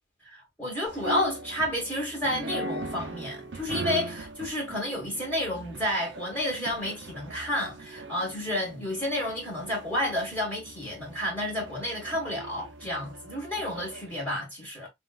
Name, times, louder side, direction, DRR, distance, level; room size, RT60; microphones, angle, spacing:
voice 1, 0.2-14.9, left 1 dB, 5° left, 1.6 m, -31 dB
sound 1, 0.9-14.1, right 2 dB, 85° right, 0.8 m, -40 dB
5.4 x 2.6 x 2.4 m
head